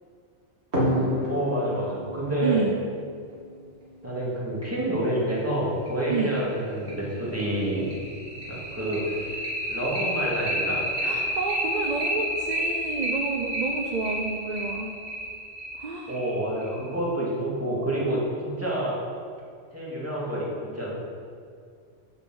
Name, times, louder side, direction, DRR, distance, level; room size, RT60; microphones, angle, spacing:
sound 1, 0.7-3.9 5.3-5.4 5.9-6.0 6.4-6.5 6.9-16.9, equal, 65° right, 2.3 m, -30 dB
voice 1, 1.3-2.6 4.0-7.9 8.3-10.8 16.1-19.0 19.7-20.5 20.7-20.9, right 1 dB, 10° right, -6 dB, 2.2 m, -28 dB
voice 2, 2.4-2.8 6.1-6.3 11.0-14.9 15.8-16.1, right 4 dB, 45° right, 2 dB, 0.7 m, -29 dB
7.0 x 6.9 x 6.2 m, 2.2 s
omnidirectional pair, 1.2 m